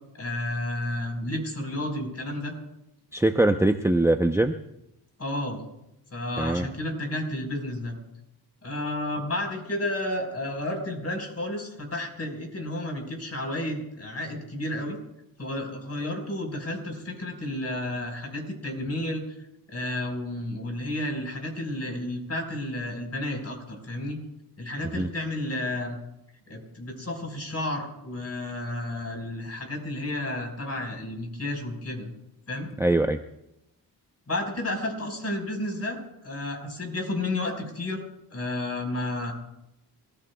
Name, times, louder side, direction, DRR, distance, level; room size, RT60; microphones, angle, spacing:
voice 1, 0.2-2.5 5.2-5.6 6.1-8.0 8.6-15.0 15.4-19.2 19.7-24.2 24.6-26.0 26.5-32.1 32.5-32.7 34.3-38.0 38.3-39.3, left 1 dB, 35° left, 3 dB, 4.6 m, -31 dB
voice 2, 3.1-4.5 6.4-6.7 24.9-25.1 32.8-33.2, right 1 dB, 5° right, 6 dB, 0.7 m, -22 dB
28.5 x 15.0 x 2.3 m, 0.85 s
cardioid pair, 65°, 42 cm